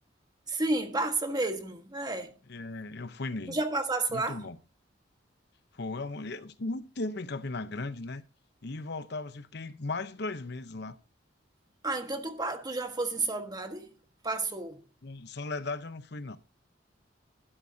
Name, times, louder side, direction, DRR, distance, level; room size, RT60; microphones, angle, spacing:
voice 1, 0.5-2.3 3.5-4.5 11.8-13.9 14.2-14.8, right 2 dB, 20° right, 1.5 m, -31 dB
voice 2, 2.5-3.6 4.1-4.6 5.7-8.2 8.6-11.0 15.0-16.4, left 3 dB, 65° left, 0.9 m, -37 dB
12.0 x 11.0 x 2.8 m
head